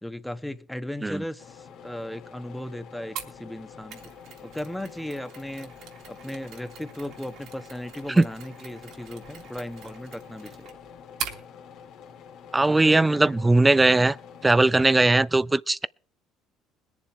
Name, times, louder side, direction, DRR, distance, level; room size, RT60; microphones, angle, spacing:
voice 1, 0.0-4.1 4.4-5.7 6.1-10.7 12.6-13.6, left 1 dB, 5° left, 1.2 m, -37 dB
sound 1, 1.4-14.7, left 7 dB, 65° left, 2.0 m, -47 dB
Mechanisms, 3.2-11.4, right 8 dB, 70° right, 3.3 m, -42 dB
voice 2, 12.5-14.2 14.4-15.9, right 2 dB, 15° right, 0.5 m, -19 dB
21.5 x 7.3 x 4.7 m
supercardioid pair, 85°, 0 cm